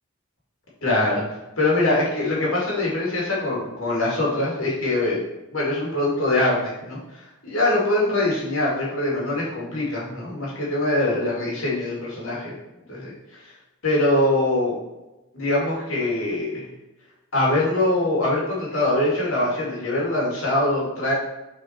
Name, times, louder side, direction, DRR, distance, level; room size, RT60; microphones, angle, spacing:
voice 1, 0.8-1.2 1.6-5.2 5.5-12.5 12.9-13.1 13.8-14.8 15.3-16.7 17.3-21.1, left 1 dB, 75° left, -5 dB, 2.4 m, -23 dB
6.1 x 4.4 x 4.4 m, 1.0 s
head